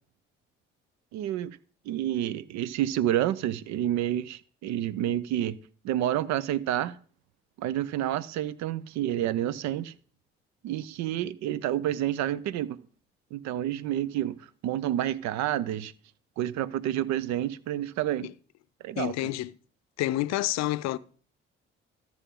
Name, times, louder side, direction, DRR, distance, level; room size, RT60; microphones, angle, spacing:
voice 1, 1.1-1.6 1.9-5.6 5.8-7.0 7.6-9.9 10.6-12.8 13.3-14.4 14.6-15.9 16.4-18.3 18.8-19.1, right 12 dB, 70° right, 0.6 m, -29 dB
voice 2, 19.0-19.5 20.0-21.0, left 15 dB, 65° left, 0.5 m, -28 dB
13.5 x 6.3 x 3.8 m
hypercardioid pair, 50°, 29 cm